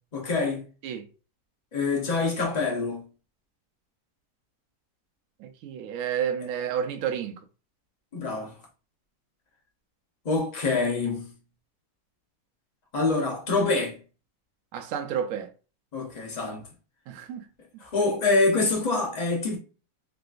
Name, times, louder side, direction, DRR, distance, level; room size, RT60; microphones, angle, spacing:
voice 1, 0.1-0.6 1.7-3.1 8.1-8.6 10.2-11.3 12.9-14.0 15.9-16.6 17.8-19.6, left 3 dB, 45° left, 0.5 m, -25 dB
voice 2, 5.4-7.4 14.7-15.5 17.1-17.5 17.7-17.8, right 8 dB, 70° right, 0.9 m, -31 dB
3.7 x 2.4 x 2.4 m
omnidirectional pair, 1.8 m